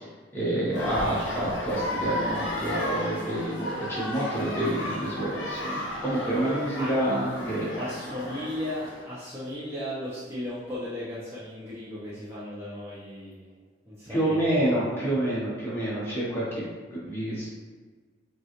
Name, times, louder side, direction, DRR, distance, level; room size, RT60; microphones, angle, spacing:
voice 1, 0.3-7.9 14.1-16.6 16.9-17.5, right 1 dB, 10° left, -8 dB, 1.1 m, -28 dB
sound 1, 0.7-9.0, left 1 dB, 75° left, 1.0 m, -34 dB
voice 2, 7.8-13.5 13.9-14.8, left 1 dB, 15° right, -10 dB, 0.6 m, -36 dB
5.2 x 2.4 x 3.0 m, 1.4 s
head